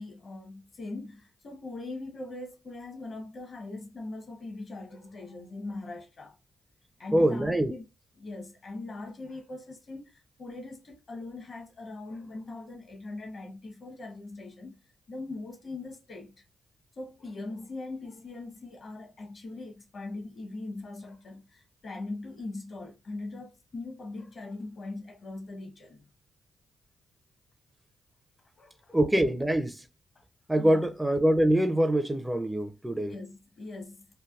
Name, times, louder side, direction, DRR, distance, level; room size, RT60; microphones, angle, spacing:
voice 1, 0.0-6.3 7.0-7.9 8.2-14.8 15.1-16.4 17.0-26.0 28.6-29.0 30.1-30.2 30.6-30.9 33.0-34.1, left 2 dB, 55° left, 0.9 m, -41 dB
voice 2, 7.1-7.7 28.9-29.8 30.5-33.1, right 1 dB, 10° right, 0.4 m, -24 dB
3.2 x 2.2 x 2.4 m
supercardioid pair, 55°, 0 cm